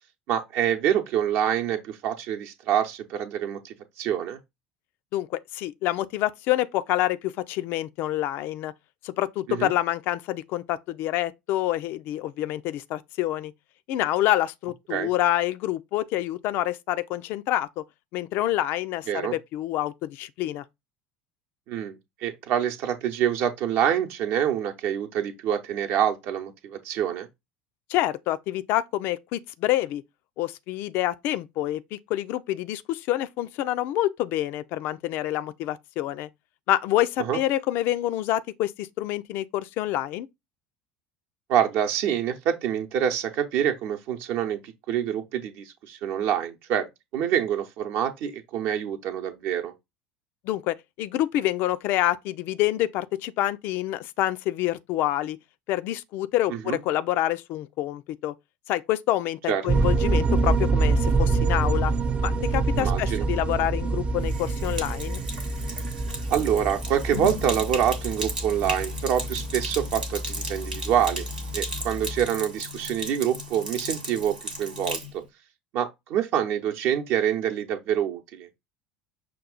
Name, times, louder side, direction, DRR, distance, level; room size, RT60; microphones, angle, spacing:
voice 1, 0.3-4.4 9.5-9.7 14.9-15.1 19.1-19.3 21.7-22.0 22.2-27.3 37.2-37.4 41.5-46.9 47.1-49.7 56.7-56.8 59.5-59.7 62.8-63.3 66.3-71.3 71.5-75.2 75.7-78.5, right 9 dB, 50° right, 0.8 m, -26 dB
voice 2, 5.1-8.7 9.0-13.5 13.9-17.8 18.1-20.6 27.9-30.0 30.4-36.3 36.7-40.3 50.4-55.4 55.7-58.3 58.7-61.9 62.2-65.2, left 14 dB, 50° left, 0.3 m, -27 dB
sound 1, 59.7-72.3, right 3 dB, 25° right, 0.4 m, -26 dB
Sink (filling or washing), 64.2-75.1, right 1 dB, 80° right, 0.9 m, -35 dB
6.0 x 2.3 x 3.8 m
figure-of-eight pair, 65°, 5 cm